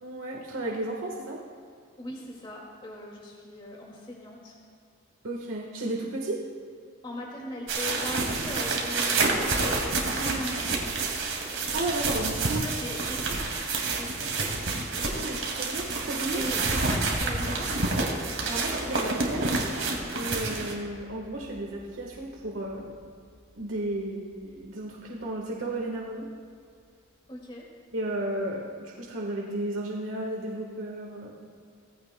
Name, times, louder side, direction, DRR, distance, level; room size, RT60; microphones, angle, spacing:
voice 1, 0.0-1.4 5.2-6.4 11.7-12.6 15.1-16.4 18.4-19.6 20.1-23.0 23.5-26.3 27.9-31.4, right 1 dB, 90° right, -1 dB, 1.4 m, -33 dB
voice 2, 2.0-4.6 7.0-10.8 12.2-14.1 16.3-17.8 27.3-27.7, left 1 dB, 25° left, -2 dB, 2.1 m, -39 dB
sound 1, 7.7-20.7, right 3 dB, 70° right, 2.2 m, -28 dB
sound 2, 17.1-27.1, left 1 dB, 25° right, 1.6 m, -45 dB
18.5 x 15.0 x 2.2 m, 2.3 s
head